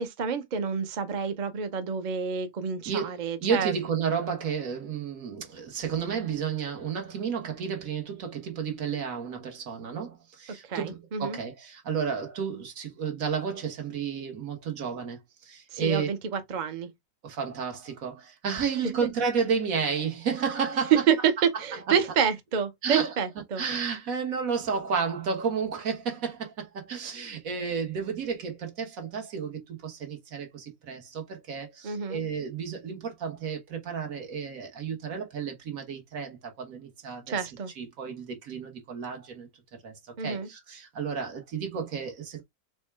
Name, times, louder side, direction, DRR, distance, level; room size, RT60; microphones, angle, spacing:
voice 1, 0.0-3.7 10.6-11.4 15.7-16.9 20.9-23.6 31.8-32.2 37.3-37.7 40.2-40.5, right 7 dB, 45° right, 0.6 m, -28 dB
voice 2, 3.4-16.1 17.2-21.0 21.9-22.0 22.8-23.1 23.6-37.5 37.8-39.5 39.8-42.4, right 6 dB, 70° right, 1.5 m, -32 dB
4.2 x 2.2 x 4.5 m
omnidirectional pair, 1.5 m